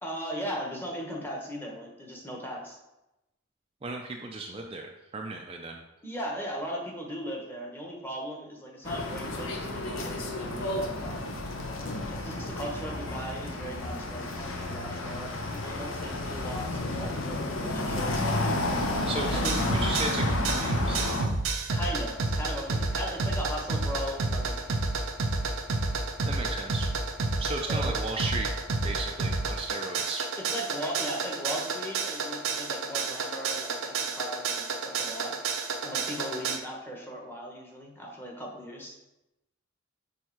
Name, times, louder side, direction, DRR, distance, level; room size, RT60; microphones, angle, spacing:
voice 1, 0.0-2.8 6.0-11.3 12.1-18.4 19.1-19.6 21.7-24.8 27.7-28.0 30.4-35.3 35.8-39.0, equal, 10° left, -1 dB, 1.0 m, -38 dB
voice 2, 3.8-5.8 19.0-19.4 19.7-21.2 26.2-26.9 27.4-28.5 28.8-30.3, right 3 dB, 30° right, 2 dB, 0.4 m, -35 dB
sound 1, 8.8-21.3, left 2 dB, 70° left, 0.8 m, -31 dB
sound 2, 19.3-36.6, right 3 dB, 85° right, 0.7 m, -30 dB
6.4 x 3.5 x 4.5 m, 0.94 s
head